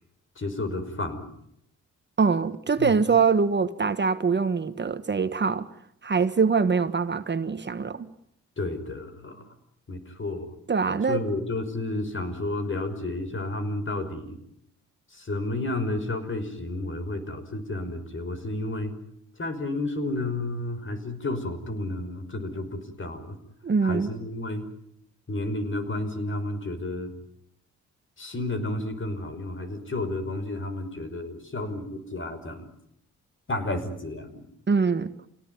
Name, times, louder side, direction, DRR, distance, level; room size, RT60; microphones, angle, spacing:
voice 1, 0.4-1.3 2.8-2.9 8.6-9.5 9.9-10.5 11.1-14.4 15.1-18.9 19.4-23.4 23.8-24.7 25.3-27.1 28.2-32.7 33.5-34.4, left 2 dB, 40° left, 5.6 m, -31 dB
voice 2, 2.2-5.7 6.0-8.1 10.7-11.2 23.6-24.1 34.7-35.1, right 5 dB, 35° right, 1.4 m, -23 dB
28.5 x 18.5 x 9.6 m
cardioid pair, 70°, 30 cm